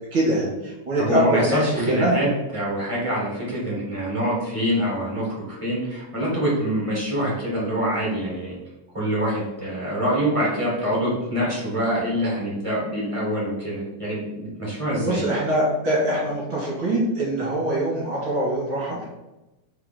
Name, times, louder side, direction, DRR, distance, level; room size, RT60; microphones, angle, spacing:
voice 1, 0.1-2.2 14.7-14.8 15.0-19.0, right 1 dB, 45° right, -6 dB, 2.5 m, -23 dB
voice 2, 1.0-2.3 2.5-8.6 8.9-15.3, equal, 15° right, -6 dB, 1.3 m, -25 dB
5.5 x 4.8 x 3.8 m, 1.0 s
omnidirectional pair, 4.0 m